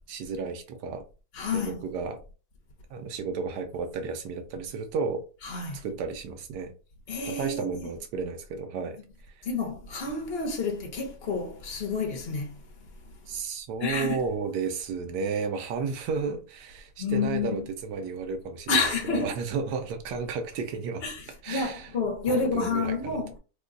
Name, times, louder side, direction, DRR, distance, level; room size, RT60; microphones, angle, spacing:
voice 1, 0.1-1.0 1.5-2.2 2.9-5.2 5.7-6.7 7.3-9.0 13.3-21.0 21.4-21.9 22.3-23.2, right 5 dB, 80° right, 1.3 m, -33 dB
voice 2, 1.3-1.8 5.4-5.8 7.1-7.9 9.4-12.9 13.8-14.2 17.0-17.7 18.7-19.4 21.0-23.3, left 4 dB, 45° left, 0.9 m, -29 dB
3.1 x 2.2 x 3.7 m
omnidirectional pair, 1.8 m